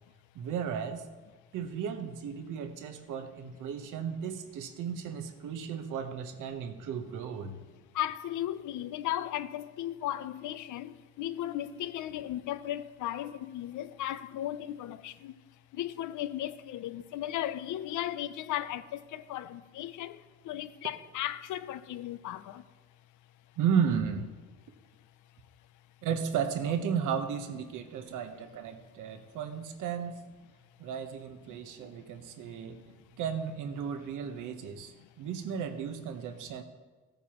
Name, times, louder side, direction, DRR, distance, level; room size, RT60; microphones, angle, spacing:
voice 1, 0.3-1.0 1.5-7.6 23.6-24.3 26.0-30.2 30.8-32.8 33.2-36.6, right 7 dB, 85° right, 1.0 m, -34 dB
voice 2, 8.0-15.3 15.7-20.2 20.5-22.6, left 12 dB, 80° left, 0.6 m, -36 dB
15.0 x 9.0 x 3.0 m
cardioid pair, 90°, 30 cm